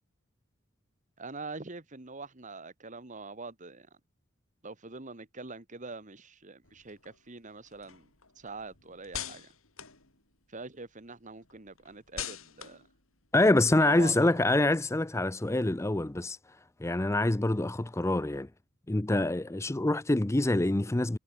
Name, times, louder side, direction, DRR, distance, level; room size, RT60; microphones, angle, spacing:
voice 1, 1.2-3.9 4.6-8.1 8.4-9.5 10.5-12.9 13.8-14.4, right 3 dB, 35° right, 1.7 m, -44 dB
sound 1, 6.6-10.8 11.2-14.7, left 9 dB, 70° left, 6.0 m, -45 dB
voice 2, 13.3-16.4 16.8-18.5 18.9-21.2, left 2 dB, 15° left, 0.5 m, -26 dB
head